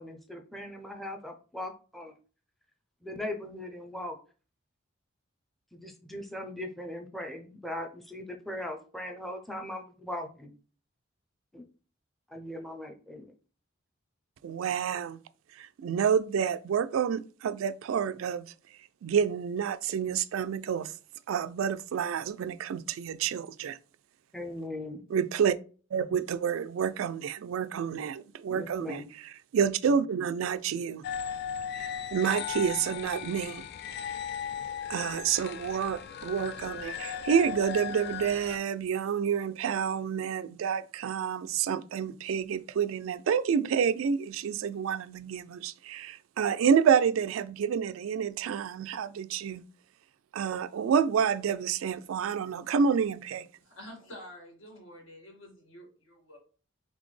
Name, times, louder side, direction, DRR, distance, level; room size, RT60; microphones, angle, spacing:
voice 1, 0.0-2.1 3.0-4.2 5.7-10.5 11.5-11.6 12.3-13.3 24.3-25.0 28.5-29.0, left 1 dB, ahead, 0.5 m, -39 dB
voice 2, 14.4-15.2 15.6-18.4 19.0-20.9 21.3-23.8 25.1-25.6 25.9-29.0 29.5-31.0 31.8-33.7 34.9-49.6 50.3-53.4, right 7 dB, 80° right, 0.3 m, -29 dB
sound 1, 31.0-38.6, left 8 dB, 55° left, 0.3 m, -37 dB
voice 3, 53.6-56.4, equal, 75° left, 2.0 m, -48 dB
4.1 x 3.4 x 3.2 m
head